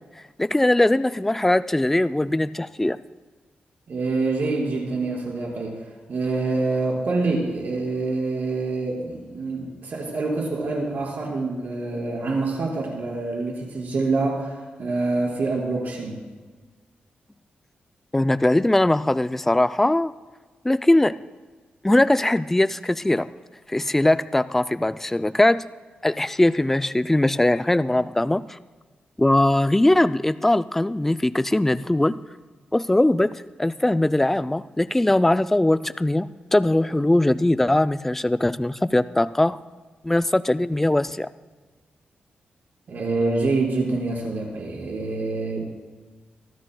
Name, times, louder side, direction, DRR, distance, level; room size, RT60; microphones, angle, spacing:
voice 1, 0.4-3.0 18.1-20.1 20.6-21.2 21.8-23.3 23.7-25.7 26.0-28.6 29.2-32.2 32.7-39.6 40.0-41.3, left 1 dB, 10° left, 13 dB, 0.3 m, -20 dB
voice 2, 3.9-5.8 6.1-16.2 42.9-45.7, right 3 dB, 60° right, -3 dB, 4.9 m, -26 dB
24.5 x 13.0 x 2.2 m, 1.3 s
wide cardioid pair, 110°, 3 cm